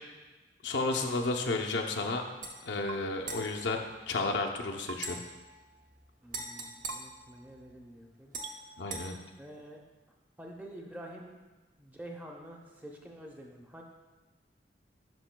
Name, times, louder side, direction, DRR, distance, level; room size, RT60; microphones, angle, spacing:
voice 1, 0.6-2.2 2.6-5.2 8.8-9.2, left 3 dB, 80° left, 2 dB, 0.7 m, -32 dB
sound 1, 2.4-2.6 3.2-4.5 5.0-7.8 8.3-9.1, right 3 dB, 45° right, 0.8 m, -43 dB
sound 2, 2.9-3.0 4.9-5.0 6.9-7.0 8.4-8.6, right 6 dB, 70° right, 0.4 m, -42 dB
voice 2, 6.2-8.3 9.4-9.8 10.4-11.3 11.8-13.8, right 1 dB, 10° right, 0 dB, 0.7 m, -47 dB
10.5 x 5.4 x 2.2 m, 1.2 s
head